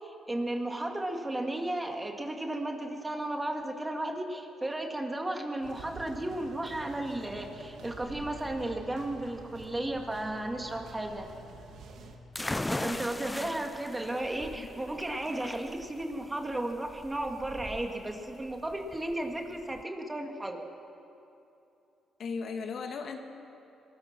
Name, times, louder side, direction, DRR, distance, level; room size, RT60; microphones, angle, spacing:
voice 1, 0.0-11.3 12.7-20.7, right 1 dB, 15° right, 3 dB, 2.3 m, -34 dB
sound 1, 5.6-12.2, right 3 dB, 75° right, 2.3 m, -48 dB
sound 2, 12.3-19.8, left 2 dB, 10° left, 0.5 m, -39 dB
voice 2, 12.8-13.6 14.5-14.7 22.2-23.2, left 5 dB, 60° left, 4 dB, 2.0 m, -38 dB
23.0 x 20.0 x 6.1 m, 2.8 s
cardioid pair, 90°, 0 cm